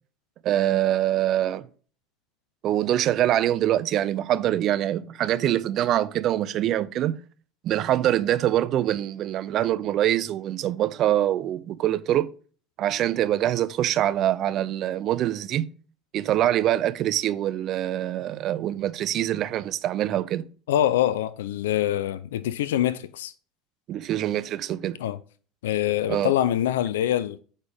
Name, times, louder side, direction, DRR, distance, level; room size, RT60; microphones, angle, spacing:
voice 1, 0.4-1.7 2.6-7.2 7.6-12.3 12.8-15.7 16.1-20.5 23.9-25.0 26.1-26.3, right 12 dB, 55° right, 0.5 m, -24 dB
voice 2, 20.7-23.3 25.0-25.2 25.6-27.4, left 12 dB, 85° left, 0.4 m, -24 dB
8.7 x 4.3 x 3.5 m
hypercardioid pair, 80°, 0 cm